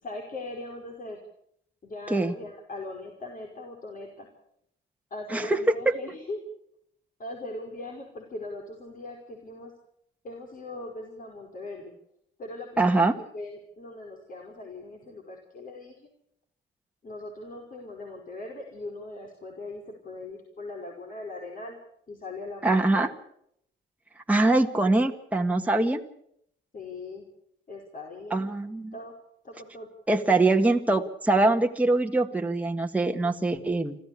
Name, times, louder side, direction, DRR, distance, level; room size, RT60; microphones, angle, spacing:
voice 1, 0.0-1.2 1.8-4.3 5.1-6.4 7.2-9.7 10.2-11.9 12.4-16.1 17.0-21.8 22.1-23.1 26.7-27.2 27.7-28.5 28.9-29.1 29.4-29.9, left 2 dB, 45° left, 0 dB, 5.0 m, -40 dB
voice 2, 12.8-13.2 22.6-23.1 24.3-26.0 28.3-28.9 30.1-34.0, right 2 dB, 5° right, 3 dB, 1.7 m, -23 dB
26.0 x 14.5 x 8.5 m, 0.73 s
cardioid pair, 90°, 20 cm